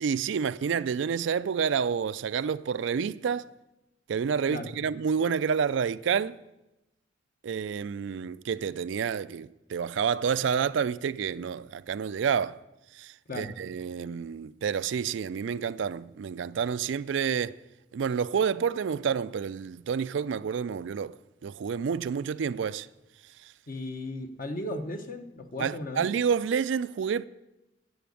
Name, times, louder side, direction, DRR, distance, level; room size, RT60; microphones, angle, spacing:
voice 1, 0.0-3.5 4.1-6.4 7.4-12.6 13.0-17.6 17.9-21.1 21.4-22.9 25.6-27.3, right 6 dB, 65° right, 0.3 m, -29 dB
voice 2, 23.7-26.1, left 1 dB, 45° left, 1.1 m, -36 dB
10.5 x 8.5 x 8.5 m
head